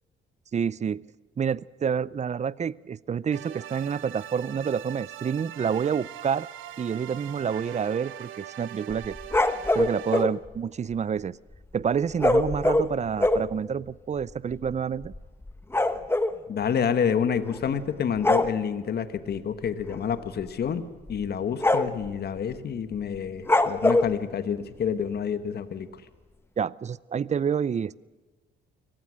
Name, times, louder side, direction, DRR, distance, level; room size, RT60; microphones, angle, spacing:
voice 1, 0.5-1.0 1.4-6.5 6.8-9.2 9.7-11.4 11.7-15.1 26.6-28.0, right 7 dB, 35° right, 21 dB, 0.6 m, -28 dB
sound 1, 3.3-10.2, right 12 dB, 85° right, 1.3 m, -42 dB
sound 2, 8.9-10.3 12.2-13.5 14.2-14.3 14.5-14.7 15.0-16.4 17.5-17.8 18.2-18.5 19.9-20.1 20.5-20.6 21.1-21.2 21.6-22.1 23.5-24.1, left 2 dB, 10° left, 1.2 m, -23 dB
voice 2, 16.5-20.8 21.1-25.9, left 7 dB, 55° left, 11 dB, 1.5 m, -28 dB
24.5 x 18.0 x 6.4 m, 1.3 s
cardioid pair, 90°, 20 cm